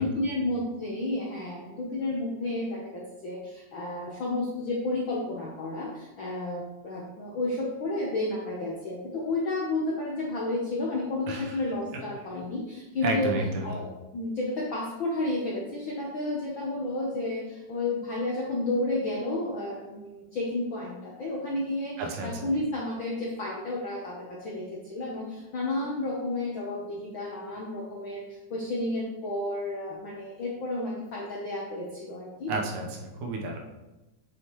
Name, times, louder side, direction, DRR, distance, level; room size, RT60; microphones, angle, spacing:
voice 1, 0.0-13.3 13.6-32.5, left 2 dB, 70° left, -3 dB, 1.2 m, -31 dB
voice 2, 13.0-13.7 22.0-22.4 32.5-33.6, right 2 dB, 75° right, 1 dB, 2.4 m, -31 dB
8.1 x 6.5 x 3.1 m, 1.0 s
omnidirectional pair, 3.6 m